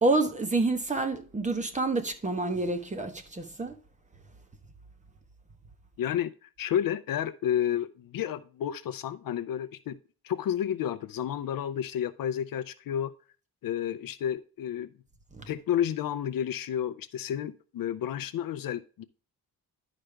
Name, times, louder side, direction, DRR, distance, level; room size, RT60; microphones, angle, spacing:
voice 1, 0.0-3.7 15.4-15.5, right 3 dB, 20° right, 1.1 m, -28 dB
voice 2, 6.0-10.0 10.2-13.1 13.6-14.9 15.5-19.0, left 10 dB, 65° left, 0.5 m, -31 dB
11.5 x 5.0 x 3.3 m
wide cardioid pair, 160°, 36 cm